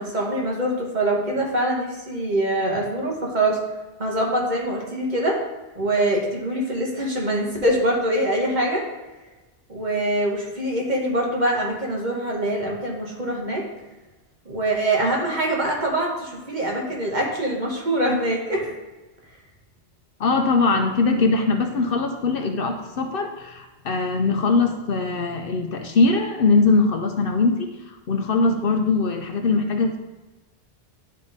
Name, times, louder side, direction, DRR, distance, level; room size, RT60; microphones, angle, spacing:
voice 1, 0.0-3.6 4.0-5.4 5.7-8.9 9.7-13.7 14.4-18.7, right 1 dB, 45° right, -1 dB, 1.3 m, -24 dB
voice 2, 20.2-30.0, left 3 dB, 60° left, 4 dB, 0.8 m, -21 dB
10.0 x 3.7 x 3.9 m, 1.2 s
omnidirectional pair, 1.1 m